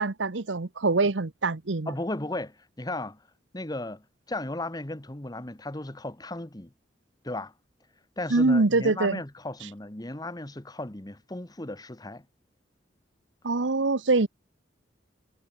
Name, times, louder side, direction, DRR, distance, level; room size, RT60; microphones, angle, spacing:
voice 1, 0.0-1.9 8.3-9.2 13.4-14.3, right 3 dB, 75° right, 1.0 m, -24 dB
voice 2, 1.9-3.2 3.5-6.7 7.2-7.5 8.2-12.2, left 2 dB, 20° left, 1.3 m, -35 dB
head